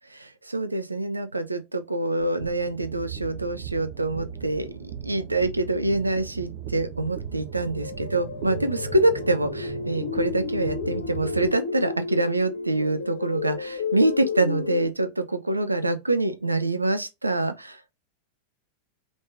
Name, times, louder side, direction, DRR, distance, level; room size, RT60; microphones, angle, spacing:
voice 1, 0.4-4.7 5.0-17.8, right 2 dB, 85° right, 0.6 m, -25 dB
sound 1, 2.2-11.5, right 7 dB, 45° right, 0.9 m, -38 dB
sound 2, 7.7-14.9, left 5 dB, 65° left, 0.9 m, -33 dB
5.2 x 3.4 x 2.5 m
figure-of-eight pair, 90°, 0 cm